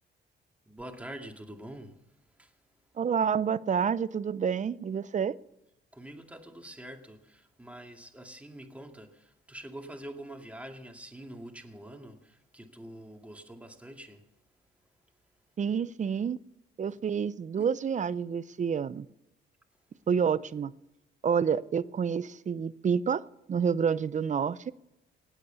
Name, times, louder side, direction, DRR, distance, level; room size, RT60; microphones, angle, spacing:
voice 1, 0.7-2.6 5.9-14.4 16.9-17.0 17.6-17.7, right 1 dB, 5° right, 2.2 m, -46 dB
voice 2, 3.0-5.3 15.6-16.4 16.8-19.1 20.1-20.7 21.2-23.2 23.5-24.7, right 7 dB, 40° right, 0.6 m, -28 dB
18.5 x 8.3 x 6.9 m
cardioid pair, 90°, 20 cm